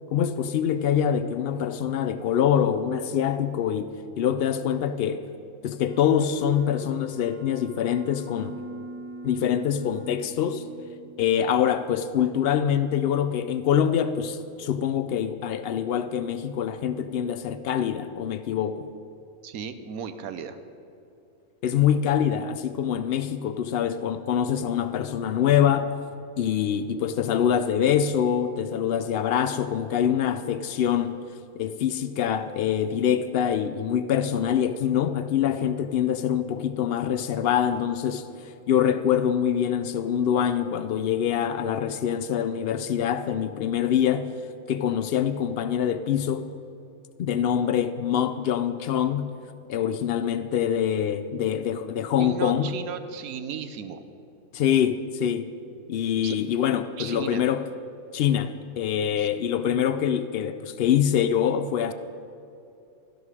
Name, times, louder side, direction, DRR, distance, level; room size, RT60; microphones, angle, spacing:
voice 1, 0.1-3.9 4.2-5.2 5.6-8.5 9.2-10.6 11.2-18.9 21.6-25.9 26.4-31.2 31.6-38.3 38.7-44.3 44.7-46.5 47.2-49.3 49.7-52.7 54.5-55.5 55.9-57.6 58.1-61.9, left 9 dB, 80° left, 11 dB, 0.5 m, -25 dB
Wind instrument woodwind instrument, 5.8-10.5, left 5 dB, 5° left, 1.5 m, -48 dB
Piano, 8.4-14.0, right 2 dB, 60° left, 1.0 m, -44 dB
voice 2, 19.4-20.6 52.2-54.0 56.2-56.4 57.0-57.5 59.2-59.3, right 7 dB, 75° right, 10 dB, 1.2 m, -35 dB
13.0 x 11.5 x 4.8 m, 2.7 s
omnidirectional pair, 1.6 m